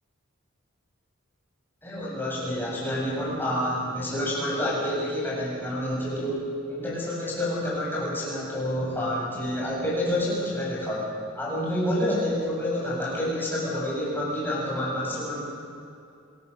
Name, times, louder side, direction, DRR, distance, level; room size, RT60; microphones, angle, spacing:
voice 1, 1.8-11.1 11.4-15.4, left 1 dB, 10° left, -5 dB, 7.3 m, -28 dB
25.5 x 18.5 x 7.1 m, 2.5 s
head